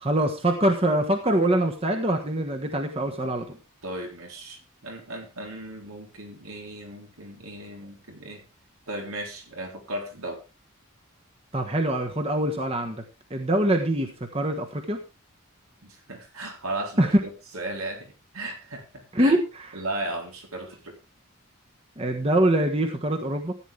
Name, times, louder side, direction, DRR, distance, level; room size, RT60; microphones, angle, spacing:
voice 1, 0.0-3.6 11.5-13.0 13.3-15.0 17.0-17.1 19.1-19.4 22.0-23.5, right 1 dB, 25° right, 4 dB, 1.3 m, -24 dB
voice 2, 3.8-8.4 8.9-10.4 15.8-19.3 19.7-21.0, right 1 dB, 85° right, 2 dB, 3.8 m, -36 dB
14.5 x 9.4 x 3.5 m, 0.28 s
head